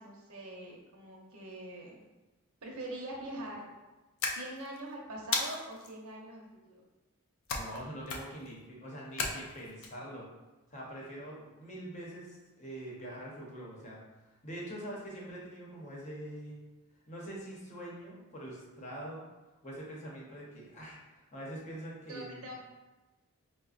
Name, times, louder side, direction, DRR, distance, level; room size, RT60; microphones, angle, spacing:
voice 1, 0.0-2.0 2.6-3.6 4.2-6.7 22.1-22.5, right 1 dB, 70° right, -1 dB, 0.7 m, -43 dB
sound 1, 4.2-4.8 5.3-5.9 7.5-8.5 9.2-9.9, left 4 dB, 65° left, 0.5 m, -34 dB
voice 2, 7.5-10.3 10.7-14.0 14.4-16.6 17.1-19.3 19.6-22.5, right 1 dB, 30° left, -4 dB, 0.8 m, -44 dB
5.0 x 2.1 x 2.4 m, 1.1 s
head